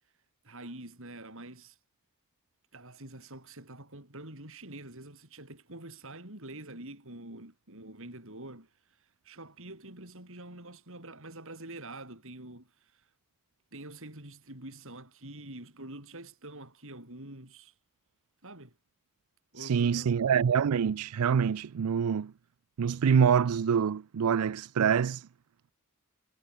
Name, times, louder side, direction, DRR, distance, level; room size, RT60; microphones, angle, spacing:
voice 1, 0.4-1.8 2.7-8.7 9.2-13.0 13.7-17.7 18.4-18.8 19.5-20.1, right 2 dB, 65° right, 7.3 m, -46 dB
voice 2, 19.6-22.3 22.8-25.3, right 7 dB, 80° right, 0.4 m, -26 dB
head